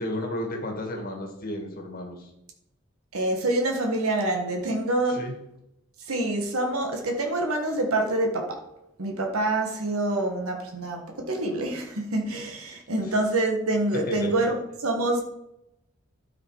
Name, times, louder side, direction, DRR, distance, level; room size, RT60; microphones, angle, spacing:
voice 1, 0.0-2.3 5.1-5.3 14.1-14.3, left 1 dB, 40° left, 1.8 m, -33 dB
voice 2, 3.1-5.2 6.0-8.6 9.0-15.2, right 2 dB, 80° right, 1.5 m, -26 dB
12.0 x 5.1 x 4.8 m
head